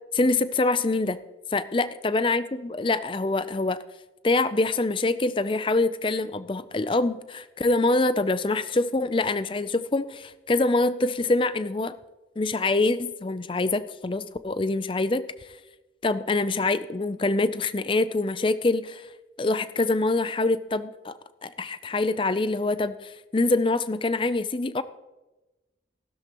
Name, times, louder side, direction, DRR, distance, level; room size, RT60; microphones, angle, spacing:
voice 1, 0.1-1.2 1.5-3.8 4.2-12.0 12.4-15.2 16.0-19.0 19.4-21.1 21.4-24.8, left 2 dB, 30° left, 13 dB, 0.5 m, -25 dB
15.0 x 13.0 x 3.0 m, 1.1 s
head